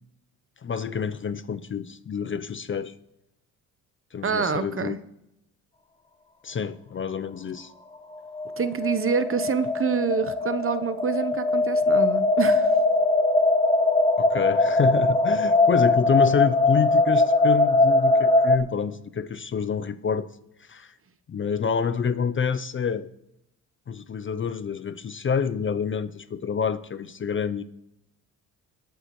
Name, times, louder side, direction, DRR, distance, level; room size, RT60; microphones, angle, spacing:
voice 1, 0.6-2.9 4.1-5.0 6.4-7.7 14.2-20.3 20.6-20.9 21.3-23.1 23.9-27.6, left 6 dB, 30° left, 14 dB, 0.6 m, -27 dB
voice 2, 4.2-5.0 8.6-12.7, right 6 dB, 35° right, 12 dB, 0.9 m, -26 dB
sound 1, 8.3-18.6, left 2 dB, 15° left, 1.3 m, -21 dB
20.5 x 8.1 x 3.1 m, 0.83 s
supercardioid pair, 70°, 38 cm